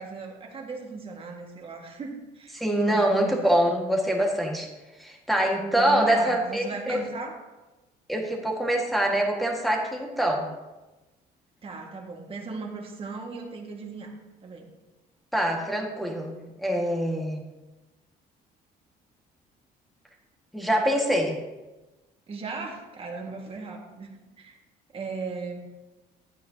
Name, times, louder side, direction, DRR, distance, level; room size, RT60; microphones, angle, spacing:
voice 1, 0.0-2.6 2.9-3.4 5.3-5.5 5.8-7.3 11.6-14.1 14.4-14.7 22.3-24.1 24.4-24.6 24.9-25.6, right 4 dB, 35° right, 0 dB, 1.7 m, -37 dB
voice 2, 2.5-4.7 5.0-7.0 8.1-10.5 15.3-17.4 20.5-21.4, right 1 dB, ahead, 0 dB, 1.7 m, -24 dB
11.5 x 9.0 x 2.8 m, 1.1 s
cardioid pair, 110°, 17 cm